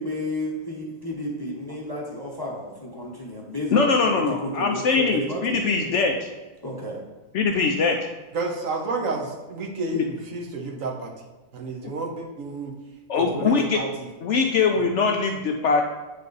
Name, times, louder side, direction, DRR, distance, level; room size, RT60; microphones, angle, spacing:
voice 1, 0.0-5.6 5.9-6.0 6.6-7.0, left 1 dB, 20° left, -2 dB, 0.7 m, -32 dB
voice 2, 3.7-6.3 7.3-8.0 9.9-10.0 11.8-11.9 13.1-13.8 14.2-15.8, left 4 dB, 65° left, 3 dB, 0.7 m, -22 dB
voice 3, 8.3-11.1 11.5-12.7 13.1-14.1 14.7-14.9, right 3 dB, 65° right, 0 dB, 1.2 m, -30 dB
8.9 x 3.3 x 3.9 m, 1.2 s
omnidirectional pair, 1.5 m